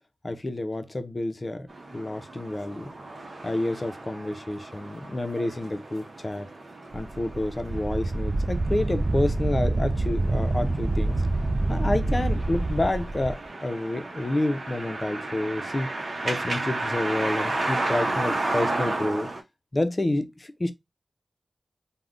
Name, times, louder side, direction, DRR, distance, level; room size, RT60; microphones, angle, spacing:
voice 1, 0.2-1.7 1.9-2.9 3.4-6.5 6.9-11.2 11.7-15.9 16.2-19.3 19.7-20.7, left 1 dB, 35° left, 0.5 m, -29 dB
FX - tranvia doppler, 1.7-19.4, right 2 dB, 70° right, 0.7 m, -33 dB
Wind, 6.9-13.3, right 2 dB, 45° right, 0.3 m, -26 dB
3.5 x 2.1 x 2.4 m
wide cardioid pair, 65°, 0 cm